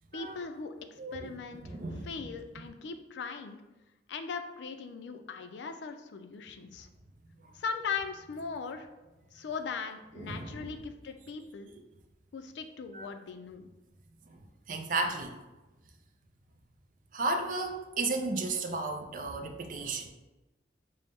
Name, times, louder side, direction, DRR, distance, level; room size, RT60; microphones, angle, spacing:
voice 1, 0.1-0.7 1.1-1.8 2.0-3.6 4.1-6.9 7.5-8.9 9.3-11.7 12.3-13.7, left 5 dB, 80° left, 8 dB, 0.4 m, -39 dB
voice 2, 1.0-1.3 1.6-2.1 10.2-10.7 12.9-13.1 14.7-15.4 17.1-20.1, right 3 dB, 45° right, 5 dB, 0.4 m, -33 dB
5.3 x 2.0 x 3.4 m, 1.1 s
head